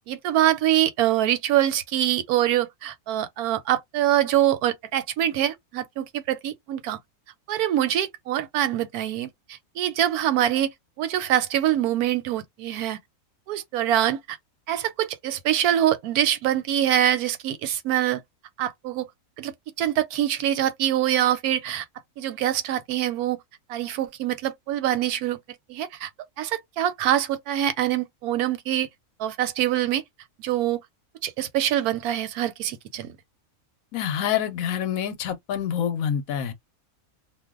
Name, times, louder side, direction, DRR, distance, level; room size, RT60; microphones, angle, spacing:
voice 1, 0.1-7.0 7.5-10.7 11.0-13.0 13.5-14.4 14.7-18.2 18.6-19.1 19.4-19.5 19.8-21.8 22.2-23.4 23.7-25.4 25.7-26.1 26.4-28.9 29.2-30.0 30.4-30.8 31.2-33.1, right 12 dB, 85° right, 1.1 m, -24 dB
voice 2, 33.9-36.5, left 9 dB, 70° left, 1.0 m, -27 dB
2.5 x 2.1 x 3.5 m
omnidirectional pair, 1.6 m